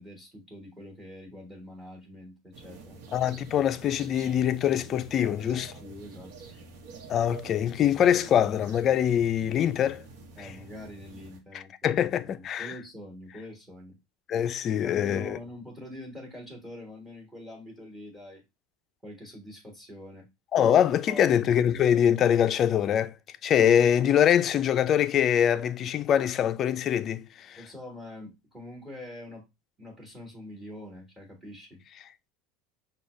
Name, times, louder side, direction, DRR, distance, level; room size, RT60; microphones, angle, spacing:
voice 1, 0.0-3.0 5.2-6.3 10.4-14.0 14.6-18.4 19.0-20.3 21.1-21.4 27.6-29.4 29.8-31.8, left 1 dB, 10° right, 1.4 m, -44 dB
sound 1, 2.5-11.4, right 4 dB, 70° right, 1.0 m, -47 dB
voice 2, 3.1-5.7 7.1-10.0 10.4-10.5 11.8-12.7 14.3-15.4 20.5-23.1 23.4-27.6, left 9 dB, 35° left, 0.4 m, -24 dB
5.4 x 2.3 x 3.1 m
supercardioid pair, 125°, 0 cm